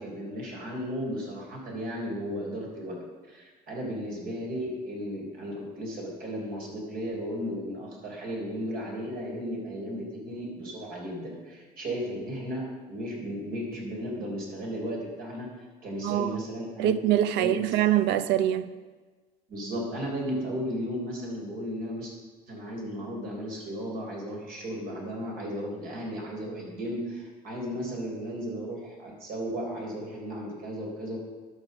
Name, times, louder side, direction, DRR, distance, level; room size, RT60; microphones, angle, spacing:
voice 1, 0.0-3.0 3.3-15.5 15.8-17.1 17.4-17.7 19.5-22.1 22.5-31.2, equal, 60° right, 3.9 m, -35 dB
voice 2, 16.0-16.4 16.8-18.7, right 11 dB, 90° right, 0.6 m, -24 dB
11.5 x 6.0 x 6.7 m
cardioid pair, 110°, 17 cm